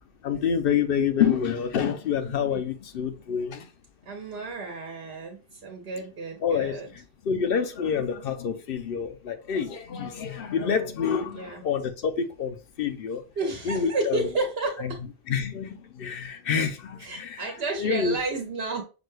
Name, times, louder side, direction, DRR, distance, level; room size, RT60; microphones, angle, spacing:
voice 1, 0.2-3.7 6.4-13.2 13.7-14.3 15.3-17.5 17.8-18.2, left 7 dB, 65° left, 0.8 m, -27 dB
voice 2, 4.0-6.9 11.3-11.6 13.4-15.0 17.0-18.8, right 3 dB, 80° right, 1.1 m, -31 dB
6.0 x 2.2 x 3.1 m
omnidirectional pair, 1.0 m